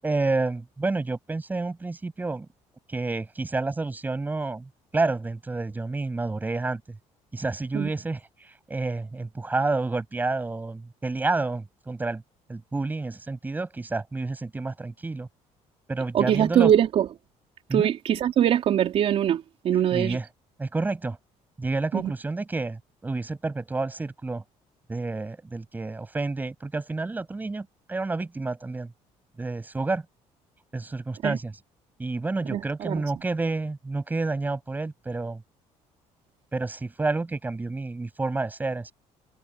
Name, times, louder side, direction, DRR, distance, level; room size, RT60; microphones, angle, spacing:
voice 1, 0.0-2.5 2.9-7.0 7.3-12.2 12.5-15.3 15.9-16.7 17.7-17.9 19.9-20.3 20.6-21.2 21.6-24.4 24.9-28.9 29.4-30.1 30.7-31.5 32.0-35.4 36.5-38.9, right 3 dB, 15° right, 7.1 m, -29 dB
voice 2, 16.1-17.1 17.7-20.2 21.9-22.1 31.2-31.4 32.5-33.0, right 10 dB, 50° right, 3.6 m, -22 dB
cardioid pair, 150°, 13 cm